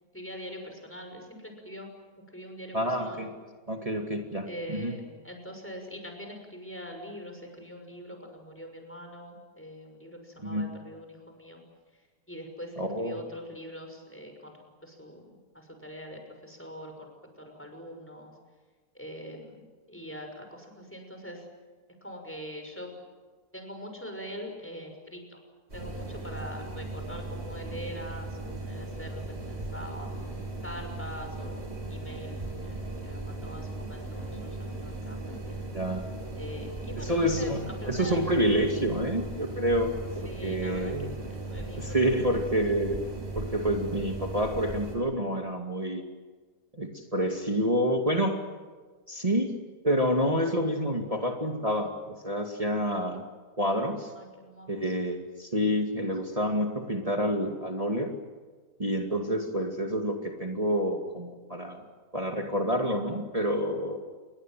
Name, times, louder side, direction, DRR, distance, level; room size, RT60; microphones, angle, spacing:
voice 1, 0.1-1.9 2.3-3.2 4.4-11.6 11.9-17.1 17.4-18.3 18.9-21.5 22.0-23.0 23.5-25.4 25.7-30.1 30.6-35.7 36.4-38.2 40.2-42.4 54.2-54.9 55.9-56.1, equal, 5° left, 4 dB, 6.1 m, -43 dB
voice 2, 2.7-3.3 3.7-4.9 10.4-10.7 12.8-13.2 35.7-36.1 37.0-41.1 41.8-43.0 43.3-46.0 46.7-48.4 49.1-49.5 49.8-53.2 53.6-54.1 54.7-58.1 58.8-61.8 62.1-64.0, equal, 20° right, 3 dB, 2.4 m, -28 dB
sound 1, 25.7-45.0, right 2 dB, 40° right, 6.7 m, -37 dB
29.0 x 22.5 x 7.7 m, 1.4 s
omnidirectional pair, 1.7 m